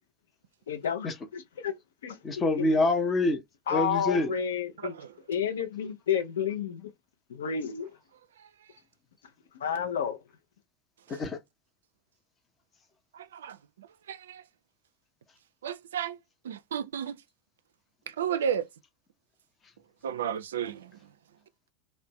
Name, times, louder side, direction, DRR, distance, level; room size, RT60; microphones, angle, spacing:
voice 1, 0.7-1.8 2.0-2.2 2.6-2.7 3.7-4.9 5.3-6.9 7.3-7.9 9.6-10.2, left 7 dB, 70° left, 0.5 m, -30 dB
voice 2, 2.2-3.4 3.7-4.3 11.1-11.4, left 2 dB, 30° left, 0.7 m, -26 dB
voice 3, 13.1-14.4 15.6-16.2 16.4-17.2 18.1-18.7 20.0-20.9, right 8 dB, 70° right, 0.3 m, -33 dB
2.5 x 2.1 x 2.9 m
figure-of-eight pair, 80°, 0 cm